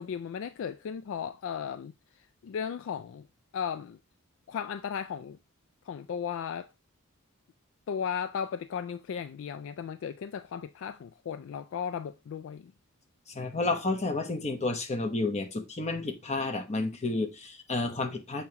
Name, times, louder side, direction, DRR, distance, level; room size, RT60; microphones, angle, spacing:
voice 1, 0.0-3.3 3.5-4.0 4.5-5.4 5.9-6.7 7.9-12.7, left 7 dB, 60° left, 0.3 m, -36 dB
voice 2, 13.3-18.4, left 2 dB, 30° left, 1.0 m, -31 dB
7.0 x 2.9 x 4.6 m
head